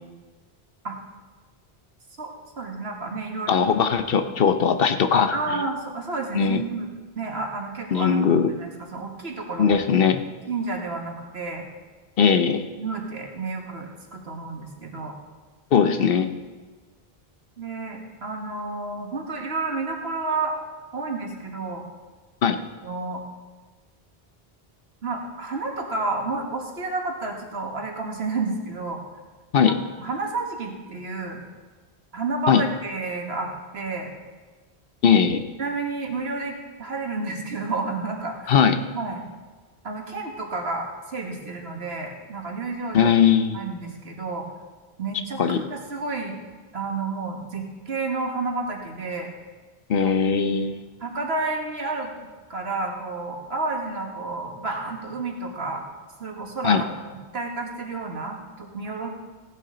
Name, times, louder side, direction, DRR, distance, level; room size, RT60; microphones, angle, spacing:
voice 1, 2.2-3.6 4.1-4.3 5.3-6.9 7.2-8.2 8.6-9.7 10.5-11.7 12.7-15.2 17.6-20.6 20.9-21.8 22.8-23.2 25.0-29.0 30.0-31.4 32.1-34.1 35.6-38.6 38.9-39.3 39.8-43.1 43.5-44.5 45.0-46.4 46.7-49.3 50.0-50.1 51.0-55.8 56.2-56.9 57.3-59.1, right 3 dB, 90° right, 1 dB, 1.9 m, -30 dB
voice 2, 3.5-5.3 6.3-6.6 7.9-8.5 9.6-10.2 12.2-12.6 15.7-16.3 22.4-22.6 29.5-29.8 32.5-32.6 35.0-35.4 38.5-38.8 42.9-43.6 45.4-45.6 49.9-50.8 56.6-56.8, left 7 dB, 65° left, 9 dB, 0.9 m, -19 dB
16.0 x 10.0 x 3.9 m, 1.3 s
omnidirectional pair, 1.0 m